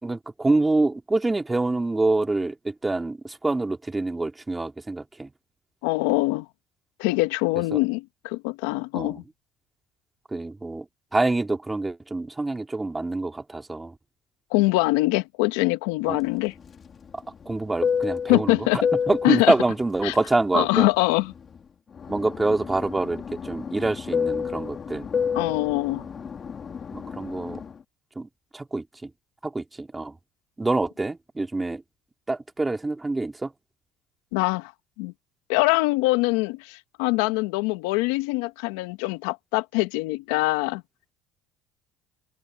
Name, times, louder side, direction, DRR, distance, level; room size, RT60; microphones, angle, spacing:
voice 1, 0.0-5.3 7.7-7.8 8.9-9.2 10.3-10.8 11.1-13.9 16.1-16.2 17.1-18.6 19.1-20.9 22.1-25.1 26.9-27.6 28.2-29.1 29.4-30.2 30.6-31.8 32.3-33.5, right 2 dB, 15° right, 2.6 m, -26 dB
voice 2, 5.8-6.5 7.0-9.2 14.5-16.5 18.3-18.9 19.2-19.5 20.0-20.1 20.5-21.3 25.3-26.1 34.3-34.7 35.0-35.1 35.5-40.8, left 21 dB, 85° left, 1.3 m, -23 dB
Fixed-wing aircraft airplane, 16.2-21.6 21.9-27.8, left 6 dB, 40° left, 2.7 m, -30 dB
supercardioid pair, 80°, 0 cm